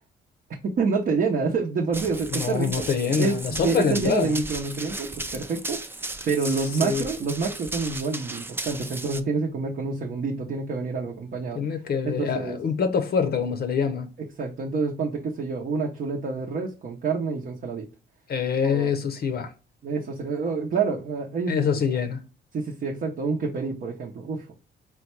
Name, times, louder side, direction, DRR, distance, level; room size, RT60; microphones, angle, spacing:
voice 1, 0.6-2.9 3.2-5.8 6.3-11.7 12.0-12.6 14.2-17.9 18.6-18.9 19.8-21.7 22.5-24.5, right 4 dB, 50° right, 0.8 m, -27 dB
Run, 1.9-9.2, right 2 dB, 10° right, 0.4 m, -35 dB
voice 2, 2.3-4.4 6.8-7.1 11.5-14.1 18.3-19.5 21.5-22.2, left 6 dB, 50° left, 0.6 m, -25 dB
3.8 x 2.2 x 4.3 m
cardioid pair, 90°, 20 cm